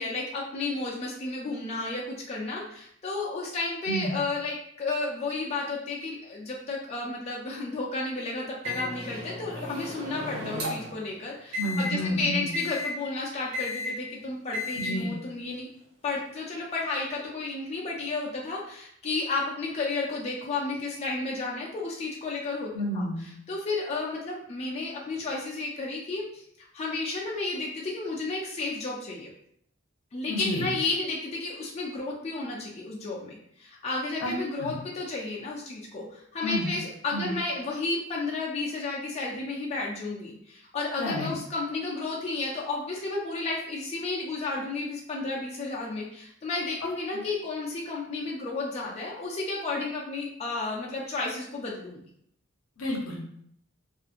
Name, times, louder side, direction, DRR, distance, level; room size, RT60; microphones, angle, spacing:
voice 1, 0.0-15.7 16.0-29.3 30.1-52.0, left 3 dB, 30° left, -3 dB, 0.4 m, -32 dB
Microwave oven, 8.6-11.0 11.5-11.9 12.5-12.9 13.5-13.9 14.5-14.9, left 2 dB, 80° right, 0.9 m, -34 dB
voice 2, 11.6-12.5 14.7-15.1 22.7-23.2 30.3-30.6 34.2-34.3 34.6-34.7 36.4-36.7 37.1-37.3 41.0-41.3 52.8-53.2, equal, 70° left, 1 dB, 0.6 m, -30 dB
2.7 x 2.4 x 2.4 m, 0.69 s
head